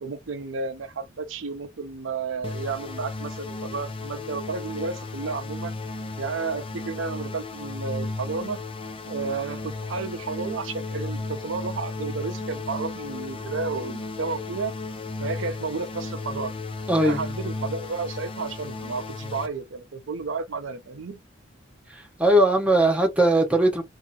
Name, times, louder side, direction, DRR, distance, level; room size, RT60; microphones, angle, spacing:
voice 1, 0.0-5.7 6.2-8.6 9.1-14.7 15.2-16.5 17.0-21.2, right 4 dB, 80° right, 0.7 m, -32 dB
sound 1, 2.4-19.5, left 3 dB, 30° left, 0.5 m, -34 dB
voice 2, 16.9-17.2 21.9-23.8, right 1 dB, 5° right, 1.2 m, -20 dB
2.8 x 2.7 x 4.2 m
head